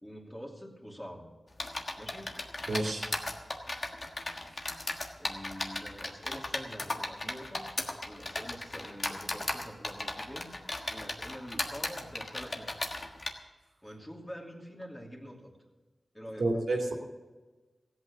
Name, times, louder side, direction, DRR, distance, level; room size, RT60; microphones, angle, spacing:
voice 1, 0.0-1.3 2.0-2.3 5.2-7.6 8.1-10.5 10.9-12.7 13.8-15.5 16.1-16.5, equal, 15° left, 0 dB, 2.6 m, -45 dB
sound 1, 1.6-13.3, left 2 dB, 45° left, 1.4 m, -36 dB
voice 2, 2.7-3.0 16.4-16.9, right 2 dB, 85° right, 1 dB, 2.3 m, -29 dB
16.0 x 8.5 x 7.0 m, 1.2 s
wide cardioid pair, 70°, 0 cm